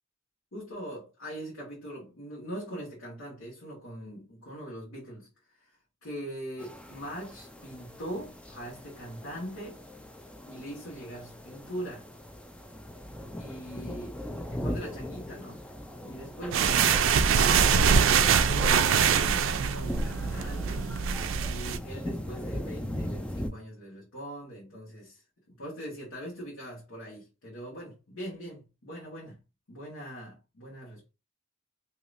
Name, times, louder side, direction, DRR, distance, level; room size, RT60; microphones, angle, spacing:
voice 1, 0.5-9.8 10.5-12.1 13.3-21.1 21.4-29.4 29.7-31.1, equal, 80° left, 1.3 m, -42 dB
sound 1, 6.6-23.5, left 1 dB, 5° left, 0.3 m, -40 dB
sound 2, 16.5-21.8, right 6 dB, 70° right, 0.4 m, -23 dB
3.3 x 2.8 x 2.5 m
head